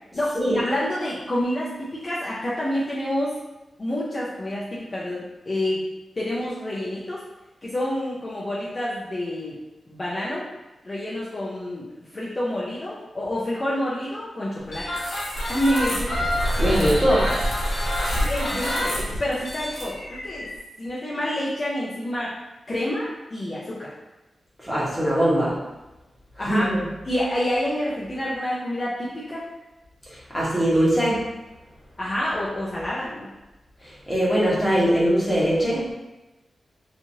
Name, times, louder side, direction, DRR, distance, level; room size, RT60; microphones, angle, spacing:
voice 1, 0.1-3.4 3.8-5.8 6.2-7.2 7.6-9.6 9.9-10.5 10.8-11.9 12.1-14.9 15.5-16.3 18.3-20.5 20.8-22.3 22.7-23.9 26.4-26.7 27.0-29.4 32.0-33.3, left 1 dB, 30° left, -7 dB, 0.5 m, -28 dB
sound 1, 14.7-20.6, equal, 75° left, 1.1 m, -26 dB
voice 2, 16.6-17.3 24.6-25.6 26.4-26.8 30.1-31.2 33.8-35.8, equal, ahead, -9 dB, 1.0 m, -21 dB
3.0 x 2.4 x 2.6 m, 1.0 s
wide cardioid pair, 145°, 0 cm